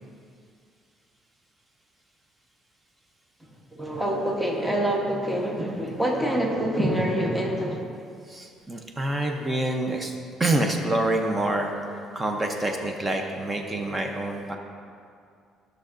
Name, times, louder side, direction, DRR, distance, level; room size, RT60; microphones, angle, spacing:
voice 1, 3.7-7.9, right 1 dB, 5° right, -2 dB, 1.0 m, -26 dB
voice 2, 8.3-10.1 10.4-11.7 12.1-14.6, right 2 dB, 20° right, 3 dB, 0.7 m, -26 dB
14.0 x 6.4 x 2.6 m, 2.3 s
cardioid pair, 130°, 0 cm